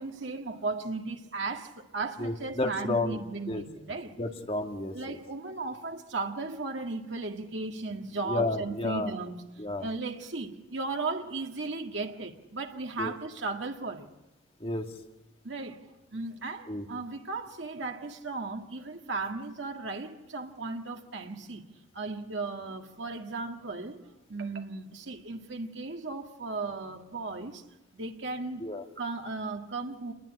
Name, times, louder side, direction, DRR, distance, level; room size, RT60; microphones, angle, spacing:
voice 1, 0.0-4.2 4.9-9.4 9.8-14.1 15.4-21.7 21.9-27.6 27.9-28.7 29.0-30.1, right 3 dB, 70° right, 1.8 m, -36 dB
voice 2, 2.2-3.6 4.2-5.2 8.2-9.1 9.6-9.9 13.0-13.1 14.6-14.9 16.7-16.9 28.6-28.8, left 2 dB, 30° left, 2.2 m, -31 dB
28.0 x 21.5 x 9.8 m
head